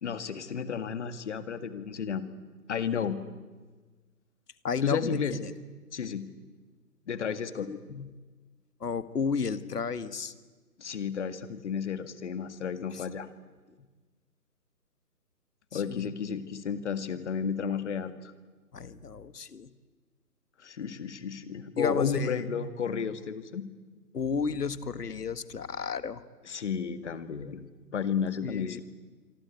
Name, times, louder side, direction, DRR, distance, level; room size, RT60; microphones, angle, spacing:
voice 1, 0.0-2.2 2.7-3.2 4.8-5.4 5.9-6.3 7.1-7.7 10.8-13.3 15.7-18.3 20.6-23.7 26.5-27.6 27.9-28.8, left 7 dB, 45° left, 11 dB, 2.0 m, -32 dB
voice 2, 4.6-5.5 7.6-8.1 8.8-10.3 12.9-13.0 15.7-16.1 18.7-19.7 21.8-22.3 24.1-26.2 28.4-28.8, left 5 dB, 70° left, 14 dB, 1.7 m, -32 dB
26.0 x 24.0 x 8.5 m, 1.3 s
hypercardioid pair, 155°, 49 cm